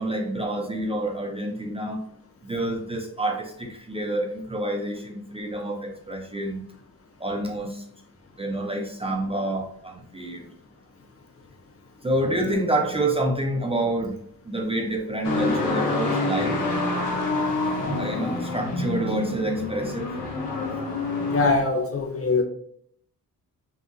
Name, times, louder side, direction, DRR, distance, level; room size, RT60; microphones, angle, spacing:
voice 1, 0.0-2.0 2.4-6.6 7.2-7.9 8.4-10.5 12.0-14.2 14.4-16.7 18.0-20.2, right 1 dB, 15° right, 1 dB, 0.5 m, -28 dB
sound 1, 15.2-21.5, left 2 dB, 60° left, 1.3 m, -27 dB
voice 2, 21.3-22.4, left 3 dB, 40° left, 4 dB, 0.7 m, -22 dB
5.4 x 2.8 x 2.6 m, 0.65 s
wide cardioid pair, 125°, 36 cm